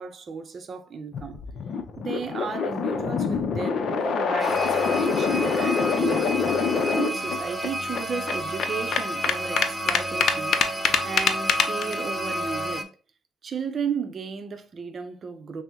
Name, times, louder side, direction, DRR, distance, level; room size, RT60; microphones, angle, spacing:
voice 1, 0.0-1.4 2.0-6.3 7.0-10.6 11.0-12.9 13.4-15.6, right 5 dB, 50° right, 0.6 m, -34 dB
sound 1, 1.1-7.4 7.6-7.7 7.9-11.9, left 6 dB, 65° left, 0.5 m, -24 dB
sound 2, 4.4-12.8, right 1 dB, 5° right, 0.6 m, -31 dB
5.9 x 2.0 x 2.9 m
cardioid pair, 90°, 0 cm